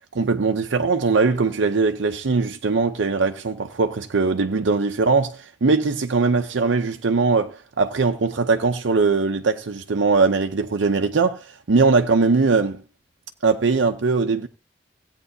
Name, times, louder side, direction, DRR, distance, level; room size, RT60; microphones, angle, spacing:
voice 1, 0.1-12.8 13.4-14.5, right 4 dB, 75° right, 0.6 m, -21 dB
16.5 x 8.9 x 2.7 m
head